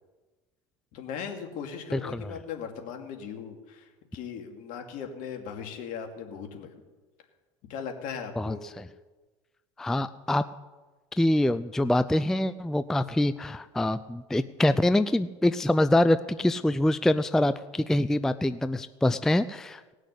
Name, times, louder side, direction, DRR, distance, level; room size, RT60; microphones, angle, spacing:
voice 1, 0.9-6.7 7.7-8.6, left 7 dB, 55° left, 4 dB, 2.3 m, -38 dB
voice 2, 9.8-10.4 11.1-19.9, left 1 dB, 5° left, 13 dB, 0.4 m, -25 dB
19.0 x 6.4 x 8.2 m, 1.3 s
hypercardioid pair, 95°, 16 cm